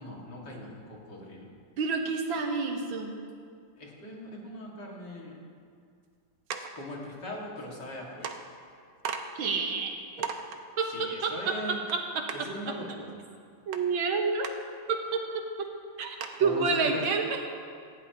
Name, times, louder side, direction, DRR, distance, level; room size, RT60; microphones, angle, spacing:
voice 1, 0.0-1.5 3.8-5.4 6.7-8.4 10.9-11.8 12.3-13.2 16.4-17.0, left 1 dB, 60° left, -3 dB, 2.7 m, -40 dB
voice 2, 1.8-3.1 9.4-9.9 10.8-11.5 12.2-12.3 13.7-14.5 14.9-15.7 16.0-17.4, right 4 dB, 90° right, 2 dB, 2.0 m, -29 dB
sound 1, 6.5-6.8 7.8-7.9 8.2-8.4 9.0-9.2 9.7-9.8 10.2-10.6 11.9-12.0 12.3-12.4 13.7-13.8 14.4-14.5 15.1-15.2 15.5-15.6 16.2-16.4, right 7 dB, 70° right, 1.4 m, -35 dB
18.5 x 15.0 x 3.0 m, 2.2 s
omnidirectional pair, 2.1 m